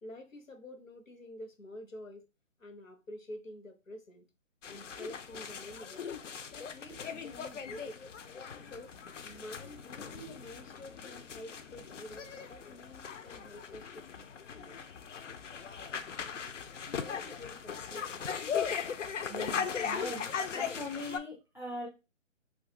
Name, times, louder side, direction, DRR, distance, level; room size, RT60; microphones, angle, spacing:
voice 1, 0.0-2.3 2.6-4.2 4.7-6.1 6.5-8.1 8.7-8.9 9.2-14.8 17.0-18.3, left 1 dB, 90° left, 1.0 m, -48 dB
sound 1, 4.6-21.2, left 7 dB, 65° left, 0.5 m, -39 dB
voice 2, 19.3-20.2 20.5-21.9, equal, ahead, 0.5 m, -41 dB
3.1 x 2.4 x 2.9 m
figure-of-eight pair, 150°, 39 cm